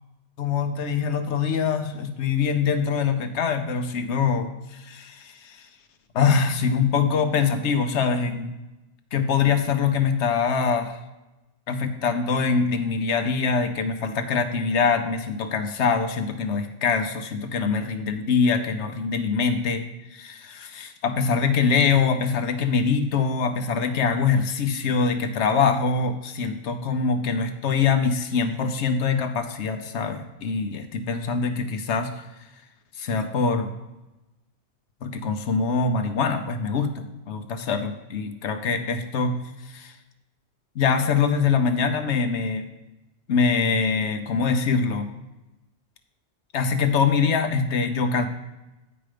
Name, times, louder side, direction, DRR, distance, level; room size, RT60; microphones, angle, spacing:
voice 1, 0.4-5.6 6.1-8.6 9.1-11.0 11.7-19.8 20.1-32.1 33.0-33.7 35.0-39.4 39.7-39.9 40.8-42.7 43.3-45.1 46.5-48.3, left 5 dB, 80° left, 7 dB, 1.1 m, -24 dB
8.9 x 4.9 x 5.0 m, 1.0 s
omnidirectional pair, 1.2 m